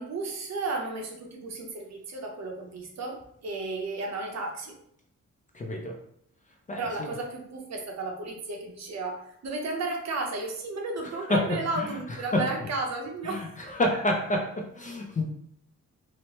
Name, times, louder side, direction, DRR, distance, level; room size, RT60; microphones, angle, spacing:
voice 1, 0.0-4.7 6.8-13.4, right 3 dB, 55° right, 1 dB, 0.7 m, -33 dB
voice 2, 5.5-6.0 6.7-7.1 11.3-11.9 12.3-12.5 13.2-15.2, left 1 dB, 25° left, 1 dB, 0.4 m, -28 dB
3.0 x 2.0 x 2.8 m, 0.69 s
cardioid pair, 105°, 32 cm